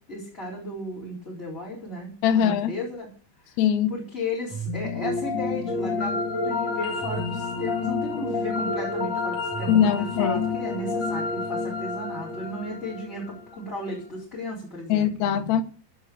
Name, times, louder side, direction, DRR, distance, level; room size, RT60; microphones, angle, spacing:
voice 1, 0.1-3.1 3.4-3.5 3.9-15.5, left 1 dB, 15° left, 4.0 m, -35 dB
voice 2, 2.2-2.7 3.6-4.0 9.7-10.4 14.9-15.6, left 8 dB, 70° left, 1.8 m, -22 dB
sound 1, 4.5-13.6, left 3 dB, 40° left, 1.8 m, -29 dB
16.5 x 5.5 x 8.5 m
omnidirectional pair, 4.8 m